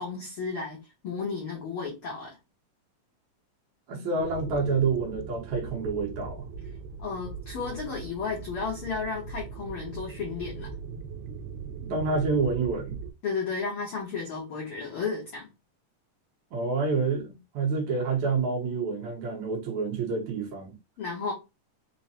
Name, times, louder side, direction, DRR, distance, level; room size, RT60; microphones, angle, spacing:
voice 1, 0.0-2.4 7.0-10.7 13.2-15.5 21.0-21.3, left 5 dB, 80° left, 1.2 m, -33 dB
voice 2, 3.9-6.5 11.8-13.0 16.5-20.8, right 4 dB, 70° right, 1.9 m, -28 dB
sound 1, 4.2-13.1, right 5 dB, 85° right, 2.2 m, -40 dB
5.3 x 2.1 x 2.6 m
omnidirectional pair, 3.7 m